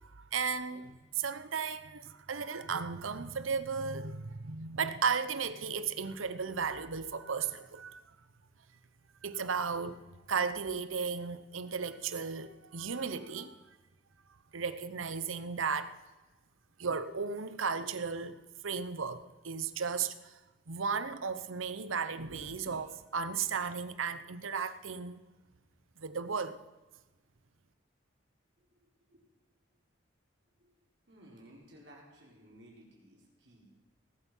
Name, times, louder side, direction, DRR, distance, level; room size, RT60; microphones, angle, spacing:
voice 1, 0.2-8.0 9.2-10.0 10.3-13.6 14.5-16.0 16.8-18.4 18.6-20.3 20.7-25.2 26.0-26.6, right 5 dB, 85° right, 0.9 m, -35 dB
voice 2, 31.1-33.7, right 1 dB, 60° right, 4.1 m, -56 dB
19.0 x 8.2 x 5.6 m
head